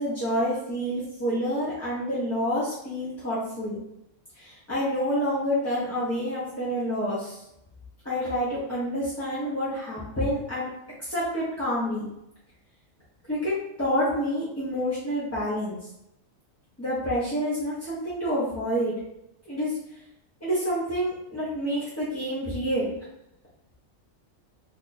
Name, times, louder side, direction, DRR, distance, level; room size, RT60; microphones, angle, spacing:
voice 1, 0.0-3.8 4.3-7.4 8.0-10.7 11.0-12.1 13.3-13.5 13.8-15.8 16.8-18.9 19.5-19.8 20.4-22.9, equal, 15° left, -10 dB, 0.6 m, -28 dB
2.8 x 2.4 x 3.9 m, 0.82 s
omnidirectional pair, 1.4 m